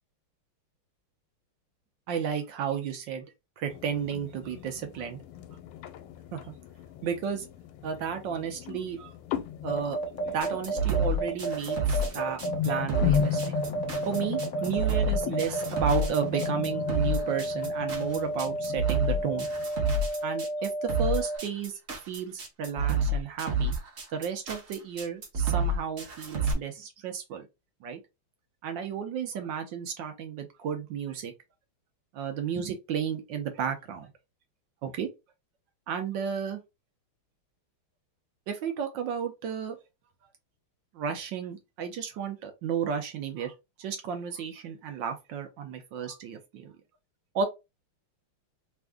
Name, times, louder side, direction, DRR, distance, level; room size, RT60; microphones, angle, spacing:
voice 1, 2.1-3.3 3.6-5.2 6.3-6.5 7.0-7.4 7.8-9.1 9.6-10.0 10.3-13.5 14.1-19.5 20.2-21.7 22.1-23.8 24.1-27.5 27.8-28.0 28.6-31.3 32.1-34.1 34.8-35.1 35.9-36.6 38.5-39.8 40.9-43.5 43.8-46.7 47.3-47.5, right 7 dB, 70° right, 1.3 m, -33 dB
sound 1, 3.7-19.7, left 9 dB, 90° left, 1.5 m, -36 dB
sound 2, 9.7-21.4, right 2 dB, 30° left, 0.8 m, -32 dB
sound 3, 10.4-26.5, right 2 dB, 50° right, 0.8 m, -29 dB
3.5 x 2.5 x 3.5 m
omnidirectional pair, 2.3 m